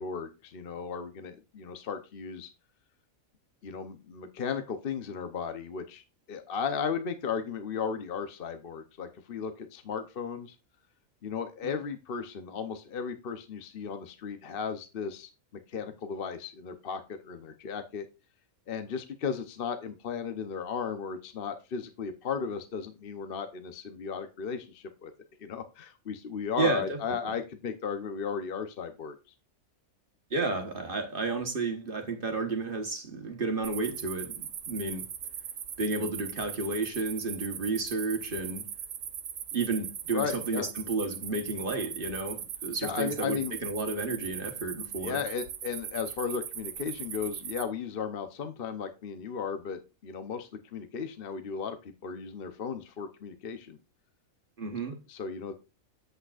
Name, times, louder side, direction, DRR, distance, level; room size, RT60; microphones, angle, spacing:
voice 1, 0.0-2.5 3.6-6.0 6.3-10.6 11.2-15.3 15.7-18.1 18.7-25.1 25.4-29.2 40.1-40.7 42.8-43.5 45.0-53.8 55.1-55.5, left 6 dB, 50° left, 0.9 m, -35 dB
voice 2, 26.6-27.0 30.3-35.1 35.8-38.6 39.5-45.2 54.6-55.0, right 3 dB, 40° right, 1.3 m, -32 dB
sound 1, 33.6-47.6, right 9 dB, 80° right, 1.3 m, -40 dB
8.6 x 7.9 x 2.4 m
omnidirectional pair, 1.4 m